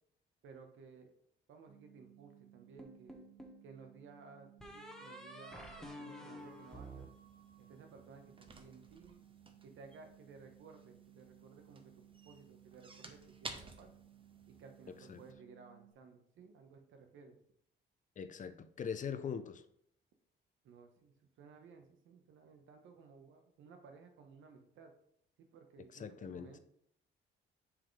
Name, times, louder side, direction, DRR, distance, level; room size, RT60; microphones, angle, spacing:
voice 1, 0.4-1.1 1.5-3.2 3.6-7.1 7.6-9.2 9.6-13.9 14.5-17.4 20.6-24.9 25.4-26.6, right 5 dB, 75° right, 5 dB, 1.2 m, -57 dB
sound 1, 1.7-15.9, right 12 dB, 50° right, 1.8 m, -62 dB
sound 2, 2.8-3.6 4.6-7.9, equal, 5° left, 1.2 m, -50 dB
sound 3, 6.4-15.3, right 3 dB, 25° right, 1.0 m, -55 dB
voice 2, 18.2-19.6 26.0-26.5, left 7 dB, 40° left, 11 dB, 0.6 m, -41 dB
7.3 x 4.9 x 3.3 m, 0.69 s
cardioid pair, 90°, 20 cm